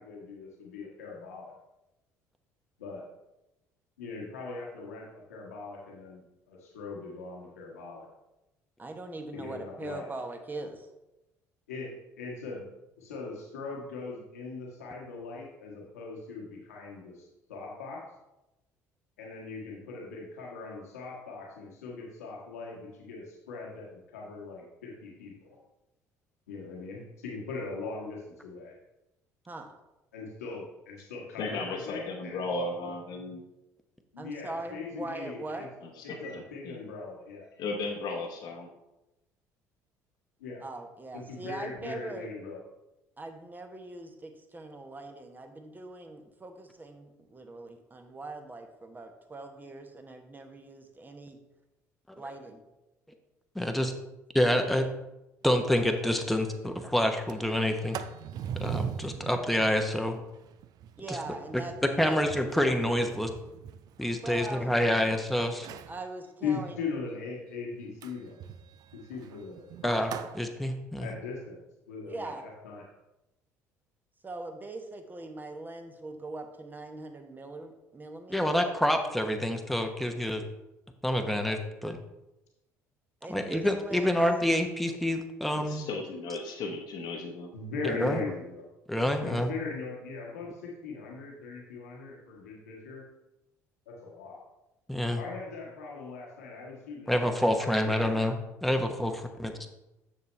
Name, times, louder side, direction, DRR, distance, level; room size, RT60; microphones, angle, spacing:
voice 1, 0.0-1.5 2.8-3.0 4.0-6.2 6.5-8.1 9.3-10.0 11.7-12.7 13.0-18.0 19.2-25.6 26.5-28.7 30.1-32.9 34.1-35.7 36.0-37.5 40.4-40.6 41.1-42.6 66.4-68.4 68.9-70.0 71.0-71.6 71.9-72.8 87.5-88.6 89.2-93.0 93.9-94.4 95.2-98.3, left 4 dB, 85° left, -2 dB, 1.4 m, -40 dB
voice 2, 8.8-10.9 29.5-29.7 34.2-35.7 40.6-42.3 43.2-51.4 52.2-52.6 61.0-61.7 62.0-62.2 64.2-65.1 65.9-67.0 72.1-72.5 74.2-78.5 83.2-84.2 88.0-88.2, right 2 dB, 25° right, 5 dB, 1.1 m, -41 dB
voice 3, 31.4-33.4 35.8-36.8 37.6-38.7 85.7-87.5, left 3 dB, 60° left, 2 dB, 1.0 m, -35 dB
voice 4, 53.5-53.9 54.3-54.9 55.4-58.0 58.6-60.2 61.1-61.2 61.5-61.6 62.0-63.3 64.0-65.7 69.8-71.1 78.3-80.4 81.0-82.0 83.3-85.9 87.8-88.2 88.9-89.5 94.9-95.2 97.1-99.5, left 1 dB, ahead, 4 dB, 0.9 m, -27 dB
Sliding door, 55.5-55.6 56.0-56.1 56.4-56.7 57.1-65.1 65.5-66.0 68.0-70.4, right 9 dB, 55° right, 0.4 m, -42 dB
6.9 x 6.5 x 3.2 m, 0.95 s
hypercardioid pair, 55°, 8 cm